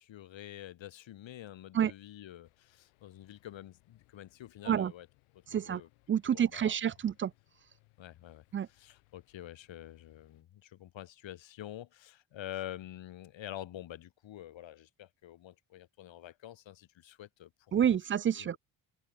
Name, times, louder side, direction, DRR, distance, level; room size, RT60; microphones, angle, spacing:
voice 1, 0.0-5.1 5.5-5.9 6.3-6.7 8.0-17.8 18.3-18.6, left 12 dB, 65° left, 2.6 m, -47 dB
sound 1, 2.4-10.4, left 25 dB, 85° left, 5.8 m, -70 dB
voice 2, 6.1-7.3 8.5-8.7 17.7-18.6, right 9 dB, 30° right, 0.4 m, -28 dB
hypercardioid pair, 55°, 48 cm